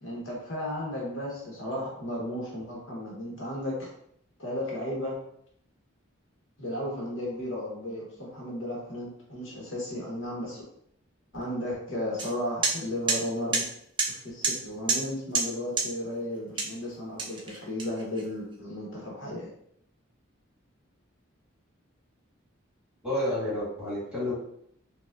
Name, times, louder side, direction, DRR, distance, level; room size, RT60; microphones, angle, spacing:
voice 1, 0.0-3.9 4.4-5.2 6.6-10.6 11.3-13.7 14.1-19.5, left 1 dB, 60° left, -3 dB, 1.0 m, -34 dB
sound 1, 12.2-12.3 12.6-12.7 13.1-13.2 13.5-13.6 14.0-14.1 14.4-14.5 14.9-15.0 15.3-15.5 15.8-15.9 16.6-16.8 17.2-18.2, right 4 dB, 25° right, 0.4 m, -26 dB
voice 2, 23.0-24.3, left 1 dB, 5° right, -9 dB, 1.3 m, -30 dB
4.7 x 2.1 x 2.4 m, 0.70 s
head